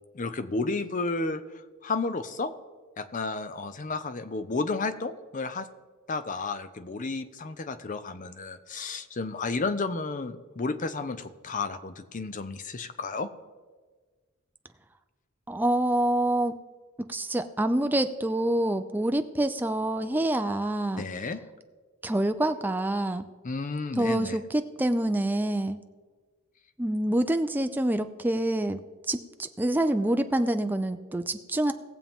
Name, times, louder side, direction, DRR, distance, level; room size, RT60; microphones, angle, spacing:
voice 1, 0.1-1.4 1.8-2.5 3.0-5.7 6.1-13.3 21.0-21.4 23.4-24.4, left 3 dB, 40° left, 11 dB, 0.6 m, -32 dB
voice 2, 15.5-16.6 17.0-21.1 22.0-23.3 24.0-25.8 26.8-28.8 29.1-31.7, right 1 dB, 10° right, 8 dB, 0.5 m, -26 dB
19.0 x 7.3 x 3.6 m, 1.4 s
head